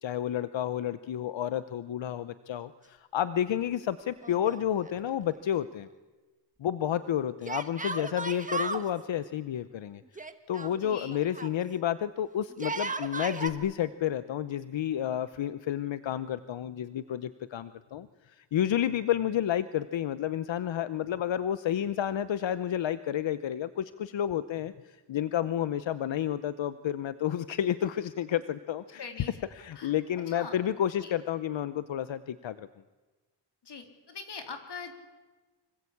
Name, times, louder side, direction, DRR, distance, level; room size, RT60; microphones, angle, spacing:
voice 1, 0.0-5.9 6.6-10.0 10.5-29.0 29.6-32.7, left 10 dB, 80° left, 13 dB, 0.9 m, -31 dB
Yell, 4.2-5.1 5.3-5.4 7.5-8.9 10.2-11.6 12.5-13.5, right 3 dB, 15° right, 1.4 m, -35 dB
voice 2, 10.8-11.1 29.0-29.4 29.7-30.6 31.0-31.1 33.6-34.9, left 5 dB, 65° left, 5 dB, 3.8 m, -42 dB
25.5 x 23.5 x 8.6 m, 1.2 s
wide cardioid pair, 165°, 44 cm